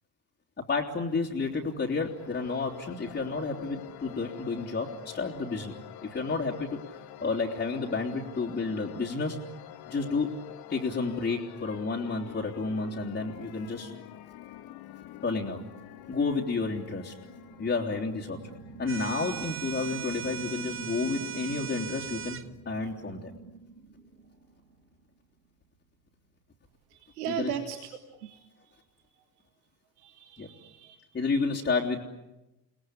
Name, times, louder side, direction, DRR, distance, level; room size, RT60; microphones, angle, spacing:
voice 1, 0.6-5.7 6.0-6.8 7.2-9.4 9.9-10.3 10.7-13.9 15.2-15.6 16.1-17.1 17.6-18.4 18.8-22.4 22.6-23.3 27.3-27.5 30.4-30.5 31.1-32.0, left 4 dB, 20° left, -2 dB, 3.2 m, -31 dB
sound 1, 1.5-20.1, left 13 dB, 50° left, 2.0 m, -47 dB
sound 2, 17.2-25.0, right 5 dB, 85° right, 2.0 m, -48 dB
sound 3, 18.9-22.5, right 10 dB, 25° right, 1.2 m, -38 dB
voice 2, 26.9-28.8 30.0-31.0, right 9 dB, 65° right, 7 dB, 1.9 m, -38 dB
29.5 x 20.0 x 9.9 m, 0.99 s
figure-of-eight pair, 60°, 48 cm